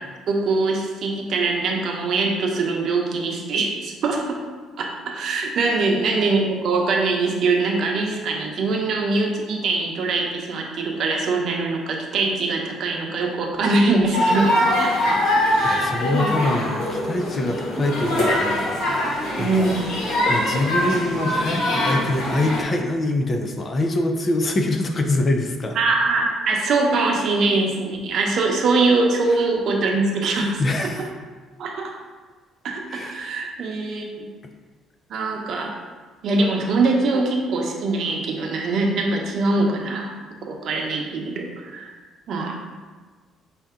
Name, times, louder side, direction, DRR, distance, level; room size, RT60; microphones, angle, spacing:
voice 1, 0.3-4.4 4.8-14.5 14.8-15.2 15.4-15.8 16.1-16.3 19.4-19.9 25.7-31.1 31.6-31.9 32.6-34.3 35.1-35.7 36.2-40.1 40.5-41.9 42.3-42.6, right 3 dB, 55° right, 1 dB, 0.7 m, -23 dB
sound 1, 14.1-22.6, left 1 dB, 85° left, 1.4 m, -23 dB
voice 2, 15.3-19.8 20.3-25.8 30.6-31.0 32.9-33.2, left 2 dB, 30° left, 4 dB, 0.4 m, -24 dB
sound 2, 16.2-23.7, left 1 dB, 10° left, 0.8 m, -40 dB
5.6 x 2.6 x 3.6 m, 1.4 s
cardioid pair, 130°, 0 cm